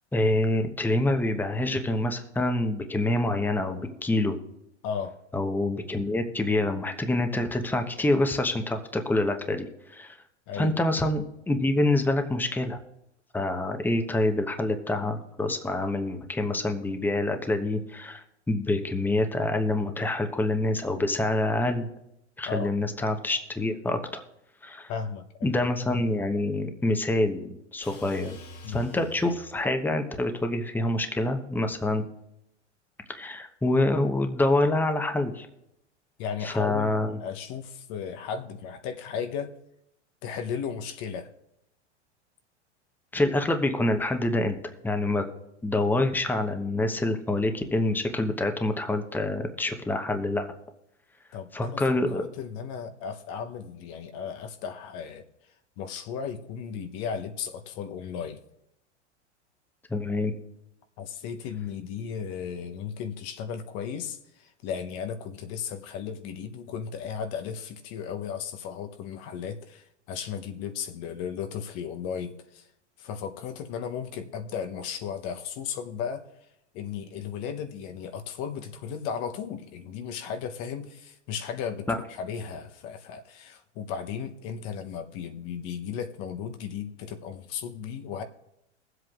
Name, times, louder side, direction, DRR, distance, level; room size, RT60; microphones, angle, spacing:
voice 1, 0.1-4.4 5.3-10.2 10.5-12.8 13.3-21.9 22.4-24.2 24.6-24.9 25.4-28.4 28.7-32.0 33.1-35.5 36.4-37.2 43.1-44.6 44.8-45.2 45.6-50.5 51.5-52.2 59.9-60.3 81.9-82.0, left 2 dB, 5° left, 6 dB, 1.0 m, -26 dB
voice 2, 4.8-5.2 10.5-10.8 22.5-22.7 24.9-26.0 28.6-28.9 36.2-39.5 40.2-41.3 51.3-55.2 55.8-58.4 61.0-72.7 73.0-76.2 76.7-88.2, left 7 dB, 50° left, 7 dB, 1.0 m, -35 dB
sound 1, 27.8-29.8, left 1 dB, 70° left, 2.8 m, -46 dB
22.5 x 7.9 x 2.5 m, 0.82 s
hypercardioid pair, 95°, 35 cm